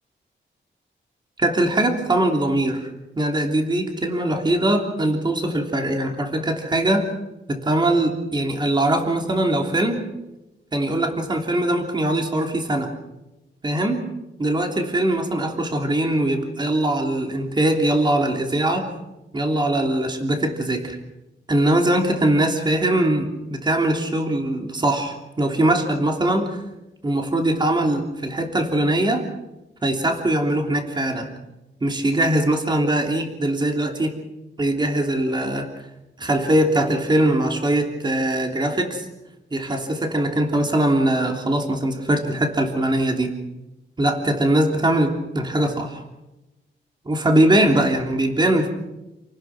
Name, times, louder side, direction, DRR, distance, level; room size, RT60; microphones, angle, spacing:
voice 1, 1.4-2.9 3.1-7.1 7.5-10.0 10.7-12.9 13.6-14.0 14.4-18.9 19.3-21.0 21.5-26.6 27.0-29.2 29.8-31.3 31.8-34.1 34.6-35.7 36.2-39.1 39.5-43.3 44.0-46.0 47.0-48.7, right 1 dB, 20° right, 3 dB, 3.2 m, -21 dB
29.0 x 19.0 x 6.0 m, 0.97 s
wide cardioid pair, 150°, 20 cm